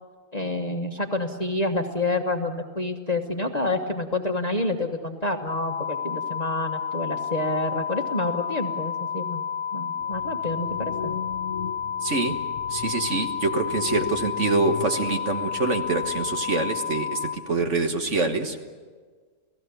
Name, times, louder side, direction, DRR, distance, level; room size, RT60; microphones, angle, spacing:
voice 1, 0.3-9.4 9.7-11.1, left 2 dB, 30° left, 3 dB, 1.2 m, -28 dB
sound 1, 5.5-17.4, left 7 dB, 50° left, 1.6 m, -31 dB
sound 2, 10.0-16.4, left 7 dB, 65° left, 1.6 m, -38 dB
voice 2, 12.0-12.4 12.7-18.6, right 3 dB, 50° right, 5 dB, 1.7 m, -25 dB
29.5 x 17.5 x 7.0 m, 1.5 s
omnidirectional pair, 1.6 m